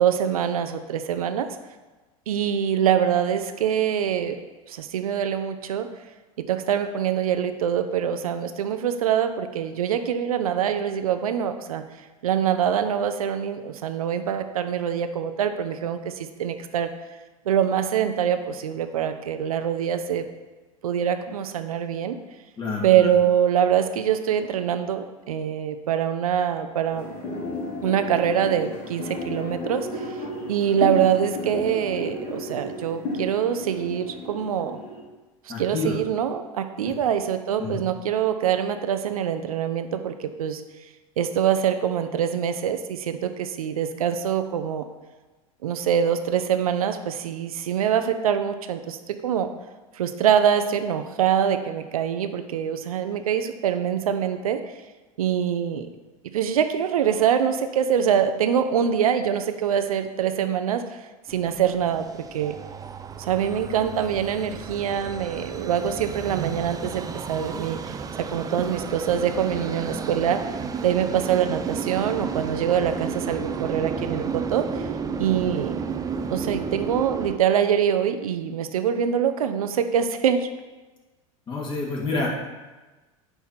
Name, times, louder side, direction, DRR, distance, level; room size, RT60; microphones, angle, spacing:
voice 1, 0.0-1.5 2.3-4.4 4.7-5.9 6.5-11.8 12.2-16.9 17.5-20.3 20.8-22.2 22.8-27.1 27.8-30.2 30.5-34.8 35.6-40.6 41.2-44.9 45.6-49.5 49.9-54.7 55.2-55.9 56.3-61.0 61.3-62.5 63.2-70.4 70.8-74.9 75.2-75.7 76.3-80.5, right 9 dB, 80° right, 8 dB, 0.7 m, -24 dB
voice 2, 22.6-23.1 35.5-36.0 36.8-36.9 37.6-37.8 81.5-82.3, left 3 dB, 25° left, -4 dB, 2.6 m, -28 dB
sound 1, 26.9-35.0, left 1 dB, 45° left, 2.8 m, -33 dB
sound 2, 61.3-77.4, right 6 dB, 20° right, 0.5 m, -32 dB
9.6 x 3.5 x 5.8 m, 1.2 s
hypercardioid pair, 85°, 18 cm